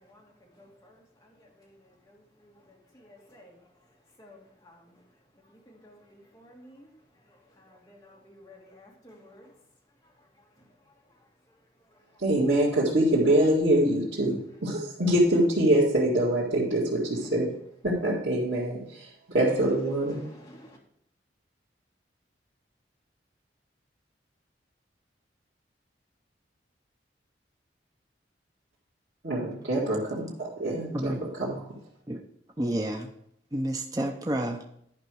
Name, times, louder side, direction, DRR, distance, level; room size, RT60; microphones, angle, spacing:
voice 1, 3.1-3.5 4.2-4.8 5.7-6.0 6.3-6.9 7.9-9.4 19.6-19.7 20.1-20.8, right 2 dB, 20° left, -3 dB, 2.0 m, -47 dB
voice 2, 12.2-17.5 17.8-18.8 19.3-20.2 29.2-30.3 30.6-31.1 31.4-31.6, right 1 dB, 75° right, -9 dB, 2.1 m, -24 dB
voice 3, 32.6-33.1 33.5-34.6, right 1 dB, 20° right, 3 dB, 0.6 m, -29 dB
10.5 x 5.4 x 4.7 m, 0.71 s
head